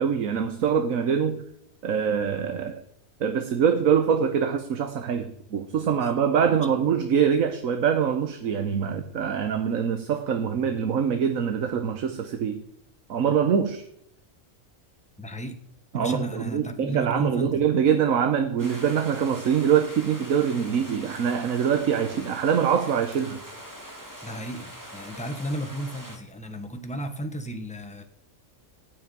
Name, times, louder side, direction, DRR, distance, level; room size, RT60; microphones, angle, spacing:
voice 1, 0.0-1.4 1.8-2.8 3.2-12.6 13.1-13.8 15.9-23.4, right 7 dB, 75° right, 7 dB, 1.4 m, -24 dB
voice 2, 15.2-15.6 15.9-17.7 24.2-28.0, right 1 dB, 5° left, 7 dB, 1.2 m, -34 dB
sound 1, 18.6-26.2, equal, 15° right, 2.1 m, -43 dB
15.5 x 6.3 x 9.3 m, 0.73 s
omnidirectional pair, 1.5 m